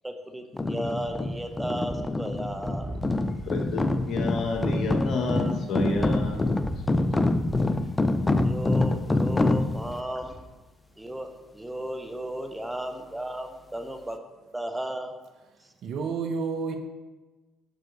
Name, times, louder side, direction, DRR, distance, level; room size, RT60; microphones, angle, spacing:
voice 1, 0.0-2.9 8.4-10.4 11.0-14.2 14.5-15.1 15.6-15.7, right 1 dB, 10° right, 6 dB, 1.3 m, -34 dB
sound 1, 0.5-10.0, left 2 dB, 25° left, 0.6 m, -26 dB
sound 2, 1.0-10.5, right 2 dB, 30° right, 2.4 m, -42 dB
voice 2, 3.5-6.6, left 2 dB, 55° left, 2 dB, 1.7 m, -30 dB
voice 3, 15.8-16.8, right 5 dB, 60° right, 5 dB, 1.1 m, -30 dB
9.3 x 6.4 x 4.1 m, 1.2 s
hypercardioid pair, 50°, 0 cm